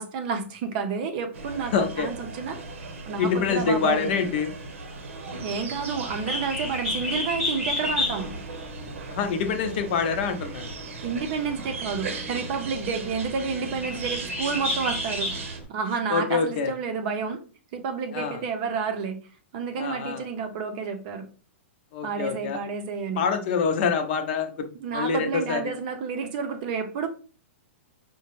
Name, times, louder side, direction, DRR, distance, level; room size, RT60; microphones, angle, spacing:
voice 1, 0.0-2.6 3.0-4.3 5.4-8.4 11.0-17.4 17.7-19.2 19.5-21.3 22.0-23.2 24.7-27.1, right 5 dB, 40° right, 6 dB, 0.6 m, -30 dB
sound 1, 1.3-15.6, right 3 dB, 80° right, 0.8 m, -38 dB
voice 2, 1.7-2.1 3.2-4.5 9.1-10.7 16.1-16.7 18.1-18.4 19.8-20.2 21.9-22.6 23.2-24.7 24.9-25.7, left 6 dB, 45° left, 7 dB, 0.6 m, -26 dB
Bird, 6.1-15.6, left 1 dB, 5° right, 1.0 m, -32 dB
4.8 x 2.1 x 3.0 m, 0.38 s
hypercardioid pair, 155°, 7 cm